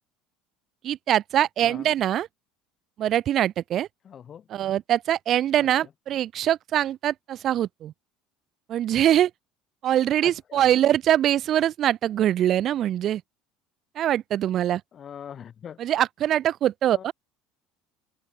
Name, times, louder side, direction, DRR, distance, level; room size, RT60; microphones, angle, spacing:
voice 1, 0.8-2.3 3.0-3.9 4.5-7.9 8.7-9.3 9.8-13.2 14.0-14.8 15.8-17.1, right 11 dB, 45° right, 0.5 m, -23 dB
voice 2, 4.0-4.5 5.6-5.9 10.2-10.7 14.9-15.9 16.9-17.1, left 8 dB, 35° left, 4.5 m, -43 dB
open air
cardioid pair, 125°, 0 cm